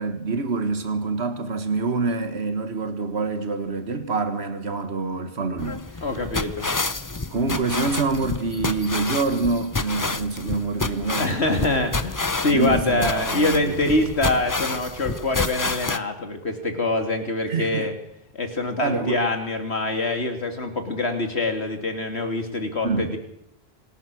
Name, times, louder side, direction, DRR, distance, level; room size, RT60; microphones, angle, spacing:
voice 1, 0.0-6.1 7.3-11.4 12.5-13.8 17.5-17.9 18.8-19.2 22.8-23.1, right 3 dB, 85° right, 1.8 m, -26 dB
sound 1, 5.6-16.0, left 3 dB, 20° left, 0.7 m, -29 dB
voice 2, 6.0-6.7 11.2-17.9 18.3-23.2, left 2 dB, 85° left, 3.1 m, -25 dB
26.5 x 18.0 x 6.3 m
omnidirectional pair, 1.1 m